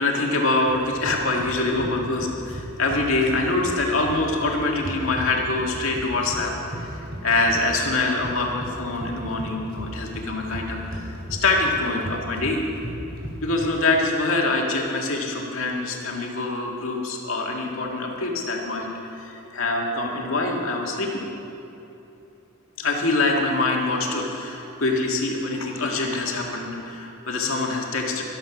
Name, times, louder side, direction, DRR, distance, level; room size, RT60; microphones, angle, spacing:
voice 1, 0.0-6.9 7.2-11.0 11.3-12.6 13.4-18.9 19.2-21.3 22.8-28.2, left 2 dB, 90° left, 0 dB, 1.9 m, -24 dB
sound 1, 0.7-13.7, equal, 55° right, 3.3 m, -36 dB
13.5 x 12.0 x 6.0 m, 2.9 s
head